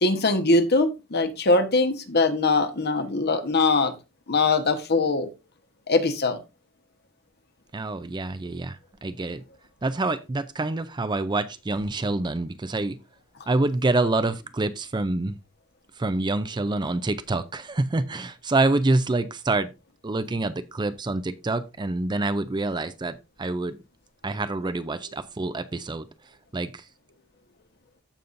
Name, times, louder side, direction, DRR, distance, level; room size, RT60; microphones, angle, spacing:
voice 1, 0.0-3.9 4.3-5.3 5.9-6.4, left 3 dB, 50° left, 1.1 m, -22 dB
voice 2, 7.7-9.4 9.8-13.0 13.5-15.4 16.0-19.7 20.0-23.8 24.2-26.1 26.5-26.9, right 2 dB, 20° right, 0.5 m, -26 dB
14.5 x 5.5 x 2.6 m
head